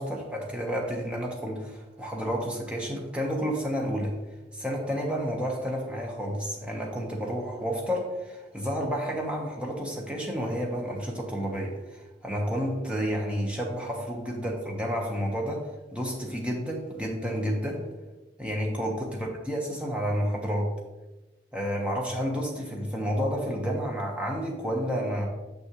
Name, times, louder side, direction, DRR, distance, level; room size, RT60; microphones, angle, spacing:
voice 1, 0.0-4.1 4.5-17.8 18.4-20.7 21.5-25.3, equal, 5° right, -2 dB, 1.2 m, -30 dB
7.1 x 6.3 x 3.1 m, 1.1 s
head